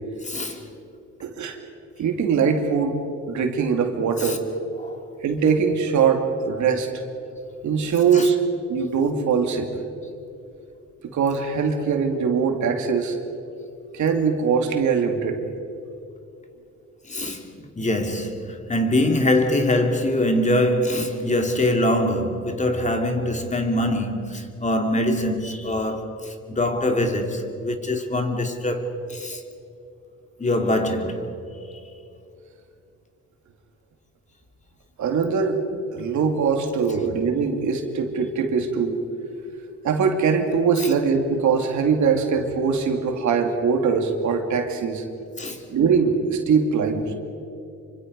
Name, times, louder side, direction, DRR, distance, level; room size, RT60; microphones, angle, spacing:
voice 1, 0.2-0.7 4.2-4.4 4.8-5.0 8.1-8.3 17.1-29.4 30.4-31.4 36.9-37.0 40.8-40.9 45.4-45.7, left 1 dB, 25° left, 2.5 m, -24 dB
voice 2, 1.2-1.6 2.0-3.0 3.3-4.4 5.2-6.9 7.6-8.4 8.7-9.7 11.0-13.2 13.9-15.5 35.0-35.6 35.9-39.0 39.8-45.0 45.7-47.1, right 6 dB, 70° right, 2.7 m, -22 dB
26.5 x 24.5 x 5.4 m
cardioid pair, 90°, 30 cm